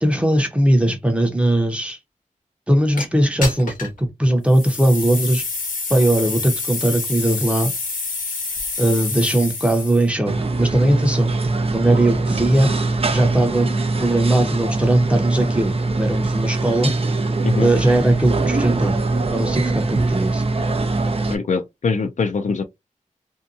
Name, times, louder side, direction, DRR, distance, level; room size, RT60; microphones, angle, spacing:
voice 1, 0.0-2.0 2.7-5.4 5.9-7.7 8.8-11.4 11.7-12.7 13.1-13.7 14.0-16.9 17.6-19.0 19.3-20.4, right 1 dB, 10° right, 0.7 m, -19 dB
sound 1, 3.0-3.1 3.4-4.0 4.5-10.1, left 3 dB, 80° left, 1.0 m, -27 dB
sound 2, 10.3-21.4, right 3 dB, 45° right, 0.5 m, -22 dB
voice 2, 21.3-22.6, left 4 dB, 65° left, 0.4 m, -23 dB
2.7 x 2.2 x 2.5 m
wide cardioid pair, 75°, 14 cm